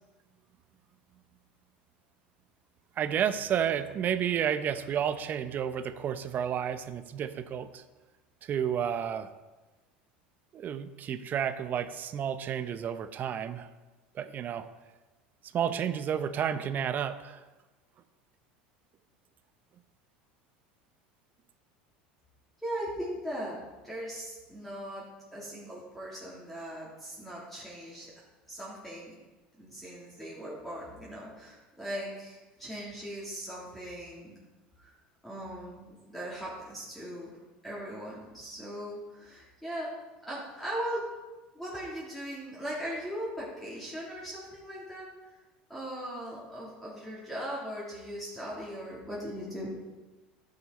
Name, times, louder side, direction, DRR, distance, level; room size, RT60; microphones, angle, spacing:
voice 1, 3.0-7.8 8.4-9.3 10.5-13.7 14.1-14.7 15.5-17.4, right 8 dB, 40° right, 12 dB, 0.7 m, -31 dB
voice 2, 22.6-23.6 23.8-28.1 28.5-29.1 29.6-34.4 34.8-34.9 35.2-37.4 37.6-39.9 40.2-41.1 41.5-45.1 45.7-49.7, equal, 5° left, -7 dB, 3.2 m, -39 dB
11.5 x 6.8 x 4.2 m, 1.2 s
hypercardioid pair, 90°, 5 cm